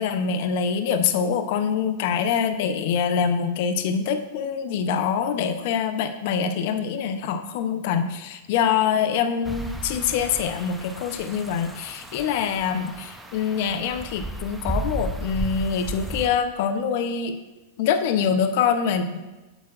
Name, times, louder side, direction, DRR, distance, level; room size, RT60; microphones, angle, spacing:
voice 1, 0.0-17.4 17.8-19.2, left 7 dB, 60° left, 9 dB, 0.6 m, -25 dB
sound 1, 9.4-16.3, right 1 dB, 5° right, 0.7 m, -34 dB
8.9 x 7.2 x 2.5 m, 1.1 s
hypercardioid pair, 120°, 0 cm